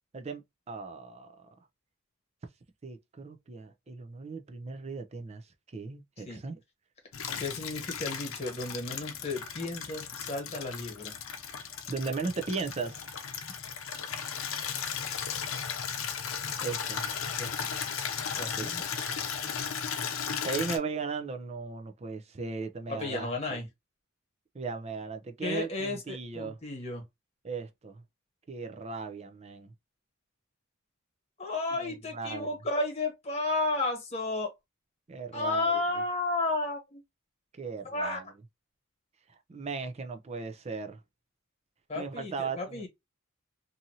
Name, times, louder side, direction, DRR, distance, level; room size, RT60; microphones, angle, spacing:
voice 1, 0.7-1.5 2.8-6.6 11.9-13.0 16.6-17.0 18.5-18.8 19.3-19.5 20.4-23.6 24.5-26.6 27.4-28.0 28.5-29.7 31.7-32.5 35.1-35.8 37.6-38.2 39.5-41.0 41.9-42.8, right 4 dB, 30° right, 0.4 m, -37 dB
Water tap faucet / Liquid, 7.1-20.8, left 7 dB, 80° left, 0.6 m, -36 dB
voice 2, 7.4-11.1 17.4-17.7 18.4-18.8 22.9-23.7 25.4-27.0 31.4-34.5 35.3-37.0 37.9-38.2 41.9-42.9, left 2 dB, 30° left, 1.3 m, -33 dB
2.7 x 2.5 x 2.7 m
head